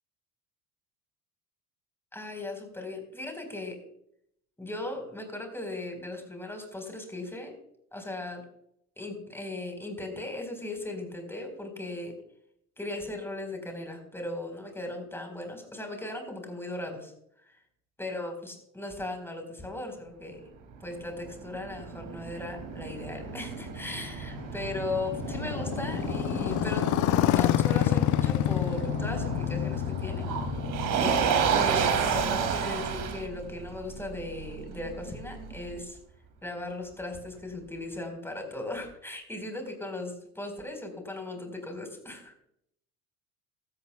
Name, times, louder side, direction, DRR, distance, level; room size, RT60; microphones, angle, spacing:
voice 1, 2.1-3.8 4.6-7.5 7.9-8.4 9.0-12.1 12.8-17.1 17.4-17.6 18.0-20.4 20.8-30.3 31.0-36.0 36.4-42.3, left 2 dB, 5° left, 3 dB, 4.5 m, -37 dB
Motor vehicle (road), 20.7-35.8, right 7 dB, 55° right, 2.6 m, -32 dB
Motorcycle, 23.0-33.0, left 13 dB, 50° left, 0.7 m, -29 dB
16.5 x 13.0 x 2.3 m, 0.72 s
hypercardioid pair, 75°, 38 cm